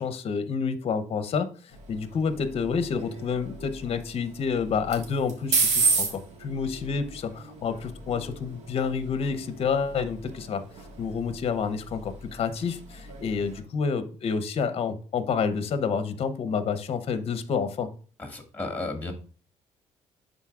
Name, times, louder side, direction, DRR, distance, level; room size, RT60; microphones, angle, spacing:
voice 1, 0.0-10.6 11.0-17.9, left 5 dB, 50° left, 12 dB, 0.7 m, -29 dB
sound 1, 1.7-13.6, right 4 dB, 70° right, 1.6 m, -33 dB
voice 2, 18.2-19.1, left 2 dB, 15° left, 4 dB, 1.9 m, -33 dB
10.5 x 3.9 x 2.4 m, 0.40 s
cardioid pair, 85°, 12 cm